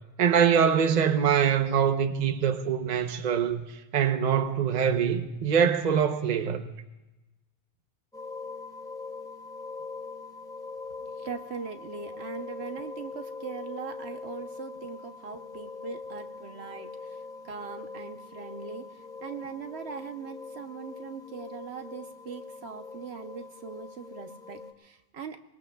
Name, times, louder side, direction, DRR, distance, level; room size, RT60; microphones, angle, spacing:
voice 1, 0.2-3.6 3.9-6.7, right 7 dB, 45° right, 0.8 m, -24 dB
sound 1, 8.1-24.7, left 4 dB, 5° left, 0.7 m, -42 dB
voice 2, 11.0-25.4, right 6 dB, 65° right, 1.1 m, -41 dB
24.0 x 20.5 x 2.3 m
omnidirectional pair, 1.2 m